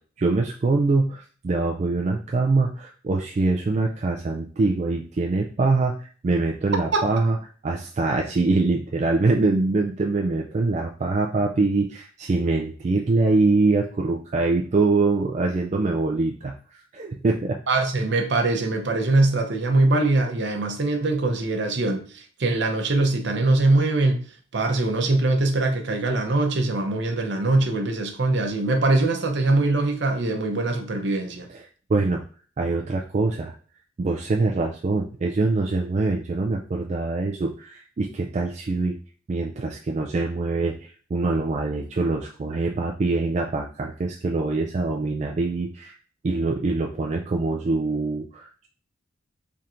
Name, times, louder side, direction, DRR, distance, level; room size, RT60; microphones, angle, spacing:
voice 1, 0.2-7.4 7.6-16.5 16.9-17.6 31.5-31.6 31.9-32.2 32.6-33.5 34.0-39.0 39.3-46.0 46.2-48.7, right 3 dB, 35° right, 0.3 m, -24 dB
voice 2, 17.7-24.3 24.5-31.5, right 2 dB, 60° right, 0.7 m, -22 dB
4.2 x 3.5 x 2.5 m
head